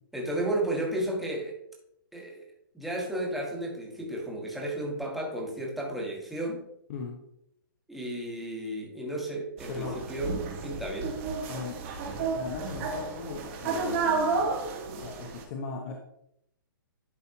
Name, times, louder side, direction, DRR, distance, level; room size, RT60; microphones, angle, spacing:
voice 1, 0.1-1.5 2.1-2.4 2.7-6.7 7.9-11.2, right 1 dB, ahead, -2 dB, 1.4 m, -33 dB
voice 2, 6.9-7.2 9.7-10.0 11.5-16.0, left 5 dB, 45° left, 0 dB, 1.0 m, -39 dB
sound 1, 9.6-15.4, right 4 dB, 35° right, 1.3 m, -32 dB
11.0 x 4.2 x 2.8 m, 0.77 s
hypercardioid pair, 155°, 12 cm